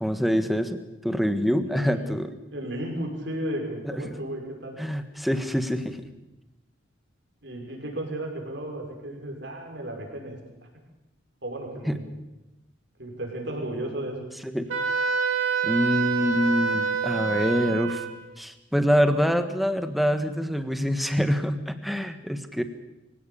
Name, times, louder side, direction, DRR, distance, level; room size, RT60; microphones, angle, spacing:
voice 1, 0.0-2.3 4.0-4.2 4.8-6.0 11.8-12.0 14.4-14.7 15.6-18.1 18.4-22.6, equal, ahead, 9 dB, 1.4 m, -25 dB
voice 2, 1.7-2.0 2.5-4.8 7.4-10.4 11.4-12.1 13.0-14.2, right 1 dB, 60° right, 1 dB, 6.1 m, -34 dB
Wind instrument woodwind instrument, 14.7-18.2, right 5 dB, 90° right, 4.0 m, -26 dB
24.5 x 17.0 x 8.6 m, 0.98 s
head